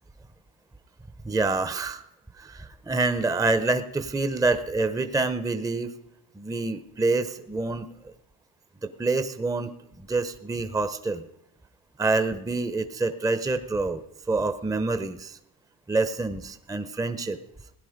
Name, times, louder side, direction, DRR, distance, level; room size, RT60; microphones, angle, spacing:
voice 1, 1.2-2.0 2.4-5.9 6.4-7.9 8.8-11.2 12.0-14.0 14.3-15.4 15.9-17.4, right 3 dB, 5° right, 11 dB, 0.7 m, -27 dB
16.5 x 10.5 x 5.1 m, 0.78 s
cardioid pair, 100°, 49 cm